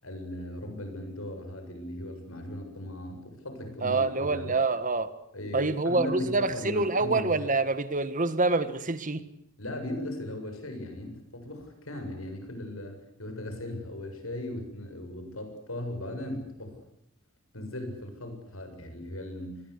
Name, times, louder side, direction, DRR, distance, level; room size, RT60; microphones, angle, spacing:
voice 1, 0.0-4.6 5.3-7.4 9.6-16.8 17.5-19.6, left 1 dB, 90° left, 6 dB, 7.5 m, -38 dB
voice 2, 3.8-5.1 5.5-9.2, right 3 dB, 40° right, 12 dB, 1.6 m, -26 dB
26.5 x 21.5 x 8.4 m, 0.76 s
head